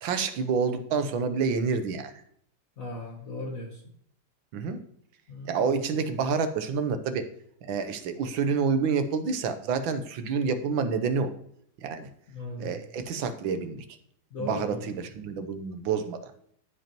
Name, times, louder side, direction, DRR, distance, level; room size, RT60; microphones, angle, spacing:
voice 1, 0.0-2.1 4.5-4.8 5.4-7.3 7.6-11.3 11.8-12.1 12.6-13.8 14.4-16.3, right 5 dB, 75° right, 9 dB, 1.6 m, -28 dB
voice 2, 2.8-3.8 5.3-5.8 12.3-12.8 14.3-14.9, left 2 dB, 45° left, 1 dB, 1.5 m, -37 dB
14.0 x 5.3 x 3.0 m, 0.67 s
omnidirectional pair, 2.2 m